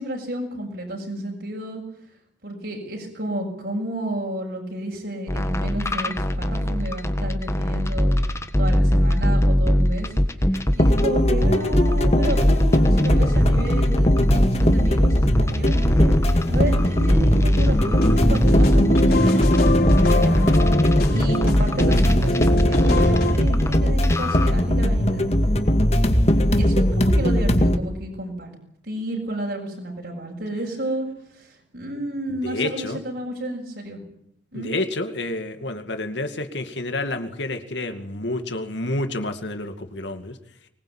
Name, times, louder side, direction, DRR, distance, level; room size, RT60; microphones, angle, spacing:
voice 1, 0.0-1.8 2.4-8.2 8.6-10.1 10.4-16.1 16.5-19.7 20.2-20.5 21.1-25.3 26.6-28.5 28.8-34.0 34.5-34.7, right 1 dB, 60° right, -1 dB, 6.9 m, -31 dB
sound 1, 5.3-11.0 11.4-23.8 24.0-24.5, equal, 15° left, 1.5 m, -21 dB
sound 2, 10.6-27.8, equal, 35° left, 2.1 m, -20 dB
sound 3, 17.9-23.3, left 1 dB, 55° left, 6.0 m, -22 dB
voice 2, 32.4-33.0 34.5-40.3, left 2 dB, 75° left, 7 dB, 2.4 m, -29 dB
24.5 x 20.5 x 9.0 m, 0.73 s
head